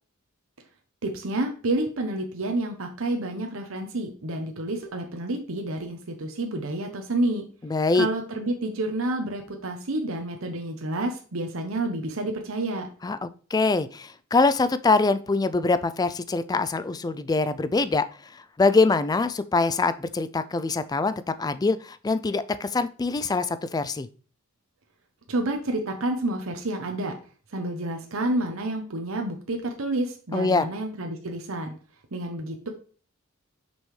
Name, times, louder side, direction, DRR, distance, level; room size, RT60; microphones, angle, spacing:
voice 1, 1.0-7.4 7.9-12.9 25.3-27.2 27.5-31.7 32.1-32.7, right 2 dB, 70° right, 4 dB, 0.9 m, -29 dB
voice 2, 7.6-8.1 13.0-18.1 18.3-24.1 30.3-30.6, left 3 dB, 20° left, 13 dB, 0.3 m, -24 dB
6.1 x 5.4 x 3.2 m, 0.40 s
head